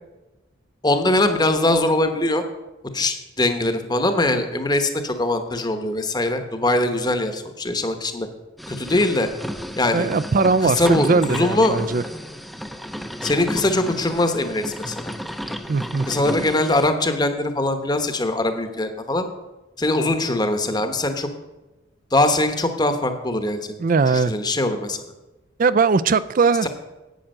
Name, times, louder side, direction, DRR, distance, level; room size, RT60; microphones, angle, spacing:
voice 1, 0.8-2.4 2.9-8.3 8.7-9.3 9.8-10.1 10.6-11.8 13.2-15.1 16.1-19.2 19.8-21.3 22.1-23.7 24.1-25.0 26.6-26.7, left 2 dB, 20° left, 8 dB, 1.0 m, -22 dB
sound 1, 8.6-16.9, equal, ahead, 0.6 m, -33 dB
voice 2, 9.9-12.0 15.7-16.1 23.8-24.3 25.6-26.7, right 4 dB, 40° right, 16 dB, 0.4 m, -19 dB
10.5 x 8.8 x 6.5 m, 1.1 s
head